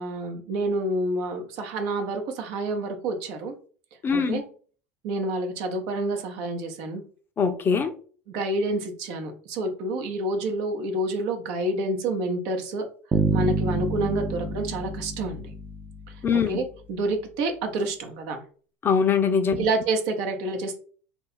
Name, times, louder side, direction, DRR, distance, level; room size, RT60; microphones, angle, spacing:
voice 1, 0.0-3.5 4.1-4.4 5.0-7.0 8.3-12.9 13.3-15.5 16.1-18.4 19.6-20.8, right 2 dB, 60° right, 0.8 m, -28 dB
voice 2, 4.0-4.4 7.4-7.9 16.2-16.5 18.8-19.7, left 6 dB, 25° left, 0.5 m, -22 dB
Bass guitar, 13.1-16.2, right 2 dB, 15° right, 0.6 m, -27 dB
2.9 x 2.3 x 4.1 m
hypercardioid pair, 85°, 8 cm